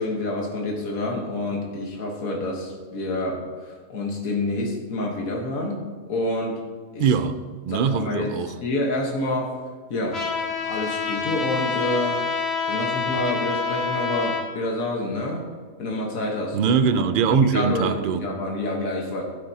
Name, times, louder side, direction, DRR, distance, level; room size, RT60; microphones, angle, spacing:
voice 1, 0.0-6.6 6.9-7.1 7.7-8.3 8.6-9.5 9.9-10.2 10.6-12.2 12.6-15.4 15.8-16.6 17.3-19.2, left 1 dB, 80° left, 1.7 m, -27 dB
voice 2, 7.0-8.5 16.5-18.2, right 6 dB, 65° right, 0.5 m, -22 dB
Trumpet, 10.1-14.4, left 5 dB, 50° left, 2.1 m, -27 dB
12.5 x 10.0 x 2.8 m
omnidirectional pair, 1.4 m